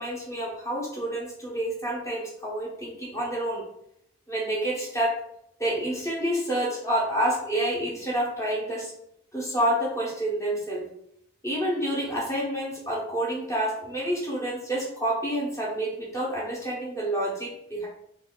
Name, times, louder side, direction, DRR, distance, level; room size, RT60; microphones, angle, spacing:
voice 1, 0.0-3.6 4.3-5.1 5.6-8.9 9.3-10.9 11.4-17.9, right 1 dB, 15° left, -5 dB, 0.9 m, -28 dB
3.9 x 2.4 x 2.3 m, 0.73 s
head